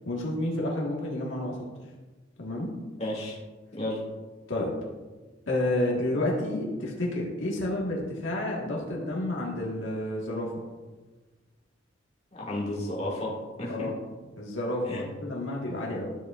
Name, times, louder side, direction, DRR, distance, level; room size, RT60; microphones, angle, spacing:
voice 1, 0.0-1.6 2.4-2.7 4.5-4.7 5.5-10.5 13.7-13.9 14.4-16.1, left 1 dB, 75° left, -3 dB, 1.6 m, -30 dB
voice 2, 3.0-3.4 3.7-4.0 12.3-13.3 13.6-13.9 14.9-15.0, left 1 dB, 35° left, -5 dB, 2.1 m, -32 dB
12.0 x 7.1 x 2.5 m, 1.2 s
head